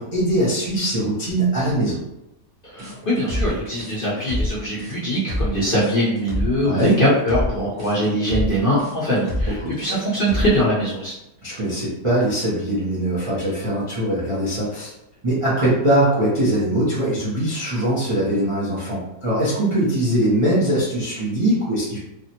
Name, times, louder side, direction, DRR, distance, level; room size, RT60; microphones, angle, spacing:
voice 1, 0.0-2.0 6.6-7.0 9.6-9.7 11.4-14.9 15.2-22.0, right 1 dB, 60° right, -8 dB, 0.3 m, -21 dB
voice 2, 2.6-11.2, equal, 45° left, -8 dB, 0.7 m, -22 dB
sound 1, 2.8-10.7, left 1 dB, 40° right, 0.9 m, -27 dB
3.5 x 2.0 x 2.8 m, 0.87 s
omnidirectional pair, 1.8 m